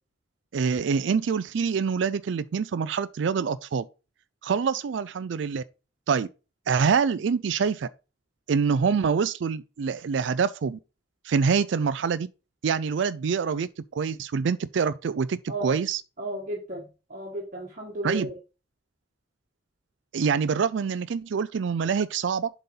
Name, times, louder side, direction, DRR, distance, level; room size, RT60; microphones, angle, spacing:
voice 1, 0.5-3.9 4.4-5.6 6.1-6.3 6.7-7.9 8.5-10.8 11.2-12.3 12.6-16.0 18.0-18.3 20.1-22.5, right 6 dB, 75° right, 0.4 m, -25 dB
voice 2, 16.2-18.3, right 1 dB, 40° right, 1.6 m, -34 dB
7.6 x 4.2 x 5.4 m
head